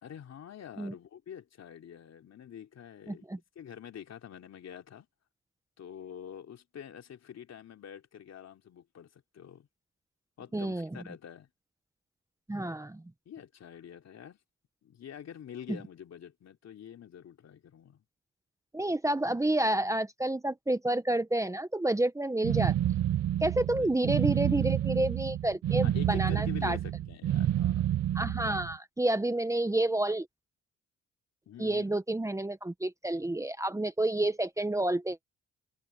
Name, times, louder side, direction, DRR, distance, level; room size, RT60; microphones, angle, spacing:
voice 1, 0.0-3.3 3.5-5.1 5.8-9.7 10.4-11.5 13.2-14.4 14.8-18.0 23.7-24.0 25.8-27.9 31.5-31.8, left 9 dB, 60° left, 3.2 m, -46 dB
voice 2, 3.1-3.4 10.5-10.9 12.5-13.0 18.7-22.7 23.4-26.8 28.1-30.3 31.6-35.2, right 1 dB, 10° right, 1.0 m, -29 dB
sound 1, 22.4-28.7, right 12 dB, 55° right, 0.7 m, -29 dB
cardioid pair, 90°, 30 cm